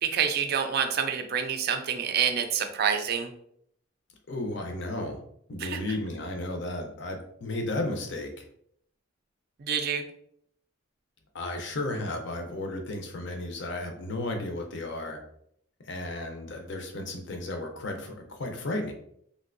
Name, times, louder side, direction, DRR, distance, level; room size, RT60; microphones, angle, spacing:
voice 1, 0.0-3.3 5.6-5.8 9.6-10.0, right 7 dB, 50° right, 7 dB, 0.3 m, -27 dB
voice 2, 4.3-5.2 5.5-8.5 11.3-15.2 15.8-18.9, left 2 dB, 55° left, 4 dB, 0.6 m, -34 dB
3.2 x 2.6 x 2.5 m, 0.69 s
head